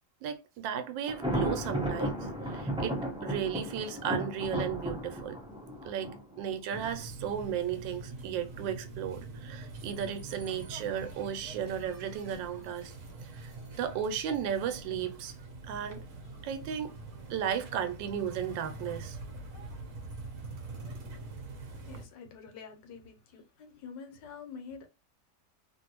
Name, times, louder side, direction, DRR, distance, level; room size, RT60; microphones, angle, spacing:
voice 1, 0.2-5.4 5.8-12.9 13.3-13.5 13.8-15.3 15.7-16.0 16.4-16.9 17.3-19.2, right 8 dB, 90° right, 1.3 m, -35 dB
Thunder, 1.1-6.9, right 1 dB, 5° right, 0.5 m, -34 dB
sound 1, 6.7-22.0, right 3 dB, 55° right, 1.0 m, -44 dB
voice 2, 21.8-24.9, left 5 dB, 80° left, 1.4 m, -47 dB
2.9 x 2.6 x 2.9 m
omnidirectional pair, 1.9 m